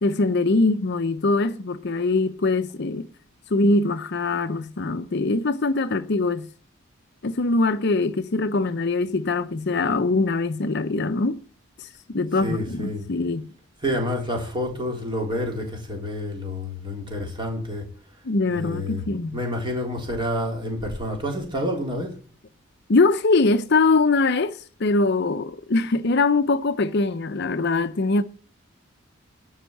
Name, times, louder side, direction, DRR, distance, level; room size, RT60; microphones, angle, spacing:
voice 1, 0.0-3.1 3.5-6.5 7.2-11.4 11.8-13.5 18.2-19.4 22.9-28.2, left 3 dB, 50° left, 0.6 m, -22 dB
voice 2, 12.4-13.0 13.8-17.9 18.5-19.0 19.3-22.2, left 1 dB, 20° right, 3.8 m, -28 dB
12.5 x 5.6 x 8.4 m
head